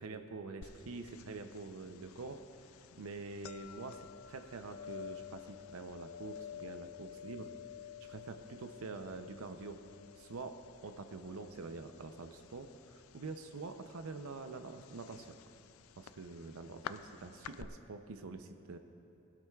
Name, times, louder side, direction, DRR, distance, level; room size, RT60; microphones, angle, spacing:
voice 1, 0.0-2.4 3.0-7.5 8.0-9.8 10.2-15.3 16.0-18.8, right 3 dB, 80° right, 7 dB, 0.6 m, -46 dB
sound 1, 0.6-17.6, left 9 dB, 75° left, 0.4 m, -52 dB
19.0 x 12.0 x 2.4 m, 2.7 s
head